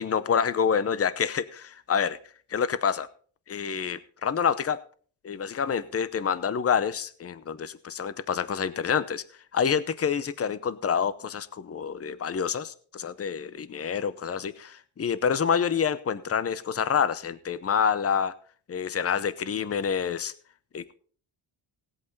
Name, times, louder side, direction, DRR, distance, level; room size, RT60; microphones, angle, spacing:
voice 1, 0.0-2.2 2.5-3.1 3.5-4.8 5.2-9.2 9.5-18.3 18.7-20.3 20.7-20.9, left 7 dB, 30° left, 0.7 m, -27 dB
17.5 x 8.2 x 4.0 m
cardioid pair, 100°, 49 cm